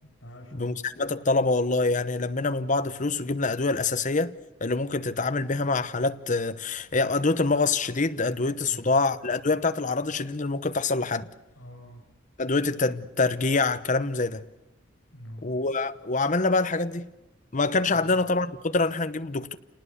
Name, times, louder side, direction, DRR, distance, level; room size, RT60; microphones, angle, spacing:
voice 1, 0.0-0.8 8.7-8.9 11.6-12.0 15.1-15.4 17.9-18.2, equal, 80° left, 5.6 m, -45 dB
voice 2, 0.6-4.3 4.6-11.3 12.4-14.4 15.4-17.1 17.5-19.6, left 3 dB, 40° left, 1.0 m, -25 dB
28.5 x 19.5 x 6.9 m
head